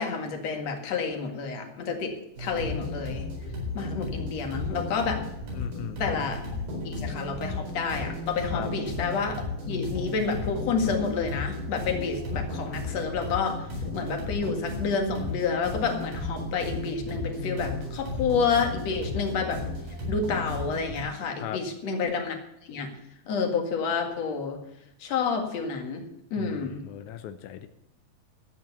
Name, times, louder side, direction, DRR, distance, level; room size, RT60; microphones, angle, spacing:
voice 1, 0.0-2.1 2.4-3.3 3.7-5.2 6.0-6.4 6.8-13.6 13.9-19.6 20.1-22.4 22.7-22.9 23.3-24.6 25.0-26.0 26.3-26.8, left 5 dB, 50° left, 4 dB, 2.7 m, -29 dB
sound 1, 2.4-21.0, left 2 dB, 75° right, 6.2 m, -34 dB
voice 2, 5.5-6.0 8.5-8.7 21.4-21.6 26.4-27.7, left 10 dB, 80° left, 9 dB, 1.7 m, -37 dB
13.5 x 9.1 x 7.1 m, 0.88 s
omnidirectional pair, 4.3 m